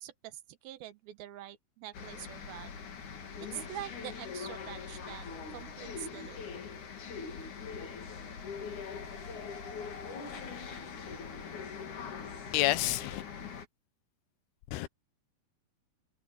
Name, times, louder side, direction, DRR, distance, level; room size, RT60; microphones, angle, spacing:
voice 1, 0.0-2.7 3.5-5.3 5.5-6.4, right 13 dB, 80° right, 2.8 m, -45 dB
sound 1, 1.9-13.7, left 6 dB, 55° left, 4.0 m, -42 dB
voice 2, 12.5-13.2 14.7-14.9, left 16 dB, 85° left, 2.9 m, -29 dB
omnidirectional pair, 4.5 m